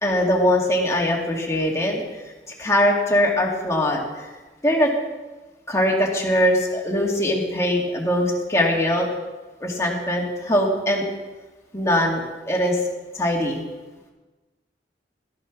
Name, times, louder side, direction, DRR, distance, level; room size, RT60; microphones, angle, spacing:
voice 1, 0.0-2.0 2.6-4.0 4.6-4.9 5.7-9.1 9.6-11.0 11.7-12.2 12.5-12.8 13.1-13.6, left 1 dB, 15° left, -2 dB, 2.2 m, -21 dB
13.5 x 9.1 x 6.1 m, 1.2 s
head